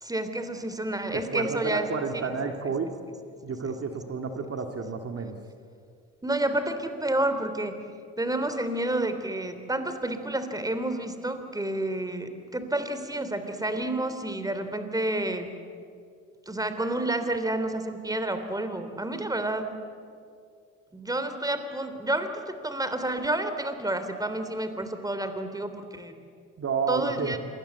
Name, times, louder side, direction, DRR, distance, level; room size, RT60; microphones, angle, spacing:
voice 1, 0.0-2.3 3.5-3.7 6.2-7.7 8.2-15.5 16.5-19.7 20.9-26.1 26.9-27.4, right 1 dB, 10° right, 8 dB, 3.2 m, -30 dB
voice 2, 1.1-2.9 3.4-5.4 26.6-27.3, right 5 dB, 40° right, 4 dB, 2.3 m, -30 dB
26.5 x 21.0 x 8.2 m, 2.3 s
hypercardioid pair, 70°, 35 cm